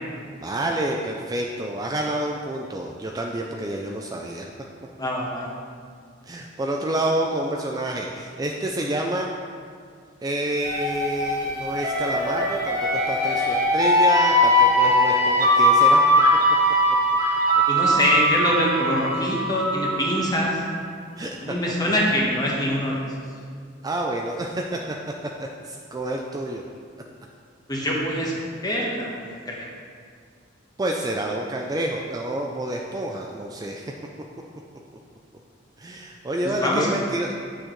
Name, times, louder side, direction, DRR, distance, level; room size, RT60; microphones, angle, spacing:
voice 1, 0.4-4.5 6.2-9.3 10.2-16.0 21.2-21.5 23.8-25.0 25.4-26.6 30.8-33.9 35.8-37.3, right 1 dB, 20° right, 0 dB, 0.3 m, -28 dB
voice 2, 5.0-5.5 17.7-20.6 21.4-23.0 27.7-28.3 28.6-29.6 36.6-36.9, equal, 20° left, -3 dB, 1.1 m, -24 dB
sound 1, 10.6-20.3, equal, 45° right, 1.3 m, -20 dB
8.4 x 6.3 x 3.1 m, 2.1 s
head